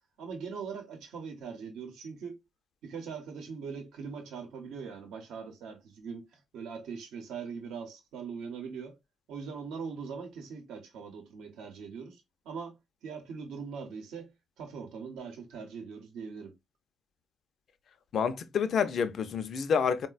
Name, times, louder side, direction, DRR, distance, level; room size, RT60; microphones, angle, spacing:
voice 1, 0.2-2.4 2.8-9.0 9.3-14.3 14.6-16.5, right 5 dB, 85° right, 0.8 m, -41 dB
voice 2, 18.1-20.1, left 6 dB, 60° left, 0.4 m, -28 dB
3.8 x 2.1 x 2.4 m
cardioid pair, 90°, 0 cm